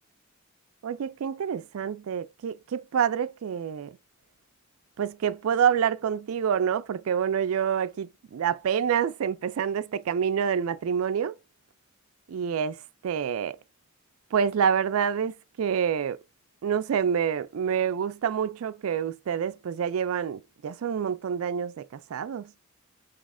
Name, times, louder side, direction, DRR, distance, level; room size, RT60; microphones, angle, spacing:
voice 1, 0.8-4.0 5.0-11.4 12.3-13.6 14.3-16.2 16.6-22.5, right 7 dB, 90° right, 0.4 m, -27 dB
4.2 x 3.1 x 3.6 m
head